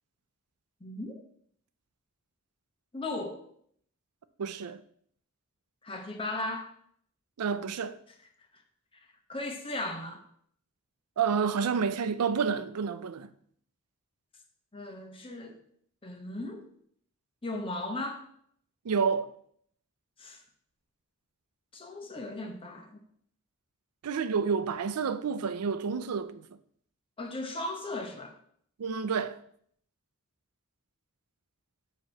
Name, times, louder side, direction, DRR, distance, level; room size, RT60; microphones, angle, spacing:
voice 1, 0.8-1.2 2.9-3.4 5.8-6.7 8.5-8.6 9.3-10.2 14.7-15.6 16.0-16.7 17.4-18.2 20.2-20.4 21.7-23.0 27.2-28.3, left 2 dB, 25° left, 0.9 m, -36 dB
voice 2, 4.4-4.8 7.4-8.0 11.2-13.3 18.8-19.3 24.0-26.4 28.8-29.4, right 6 dB, 90° right, 0.4 m, -29 dB
7.8 x 3.0 x 5.7 m
head